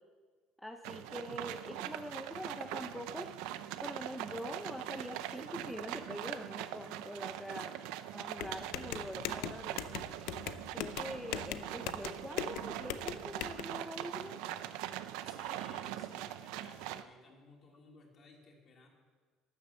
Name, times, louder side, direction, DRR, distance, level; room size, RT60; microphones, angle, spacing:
voice 1, 0.6-3.3 3.8-7.8 8.1-9.8 10.7-14.4, equal, ahead, 4 dB, 0.7 m, -44 dB
sound 1, 0.8-17.0, right 12 dB, 85° right, 0.7 m, -42 dB
sound 2, 8.4-13.6, left 12 dB, 80° left, 0.6 m, -40 dB
voice 2, 15.2-18.9, left 3 dB, 35° left, 0 dB, 2.9 m, -58 dB
12.5 x 11.0 x 7.0 m, 1.5 s
cardioid pair, 155°, 0 cm